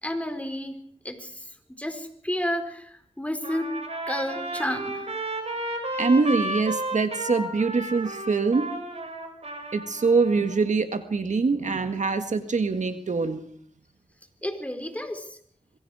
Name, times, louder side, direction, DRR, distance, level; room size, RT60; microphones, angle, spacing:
voice 1, 0.0-1.5 1.8-3.7 4.1-5.1 14.4-15.4, left 1 dB, 10° left, 6 dB, 4.1 m, -31 dB
Trumpet, 3.4-10.5, right 1 dB, 55° right, 5.8 m, -33 dB
voice 2, 6.0-8.7 9.7-13.4, right 4 dB, 70° right, 8 dB, 1.7 m, -24 dB
26.0 x 22.0 x 4.9 m, 0.62 s
wide cardioid pair, 55°, 13 cm